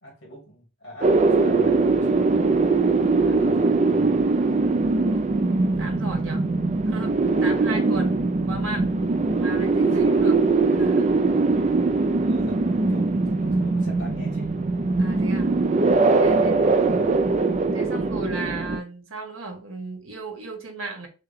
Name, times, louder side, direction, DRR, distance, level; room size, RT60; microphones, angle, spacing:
voice 1, 0.0-2.6 3.2-4.2 9.9-10.0 11.8-14.5 16.2-17.3, left 1 dB, 60° left, 2.7 m, -43 dB
sound 1, 1.0-18.8, right 3 dB, 35° right, 0.4 m, -21 dB
voice 2, 5.8-6.5 6.9-7.1 7.4-8.2 8.5-8.9 9.3-11.1 11.5-11.7 15.0-15.5 16.2-16.6 17.7-21.1, right 3 dB, 90° right, 1.6 m, -35 dB
6.5 x 2.2 x 3.6 m
head